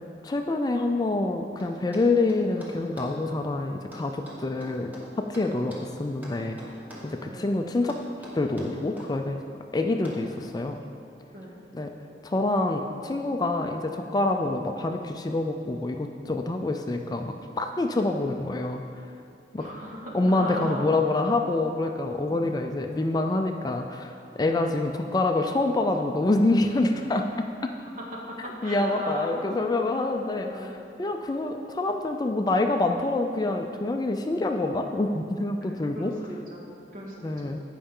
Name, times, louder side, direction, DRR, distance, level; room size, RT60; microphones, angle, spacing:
voice 1, 0.2-4.9 5.2-6.6 7.0-8.0 8.3-9.4 9.7-10.8 11.7-11.9 12.2-18.8 19.5-19.7 20.1-27.7 28.6-36.1 37.2-37.6, left 2 dB, 20° left, 4 dB, 0.3 m, -26 dB
sound 1, 1.6-3.2 3.9-5.9 6.2-7.2 7.9-9.1 10.0-10.3, equal, 10° right, 1.4 m, -44 dB
voice 2, 19.6-20.9 22.3-22.5 28.6-30.0 30.4-30.8 35.6-35.7 35.9-37.6, equal, 50° right, -4 dB, 1.7 m, -38 dB
15.5 x 5.4 x 3.7 m, 2.5 s
head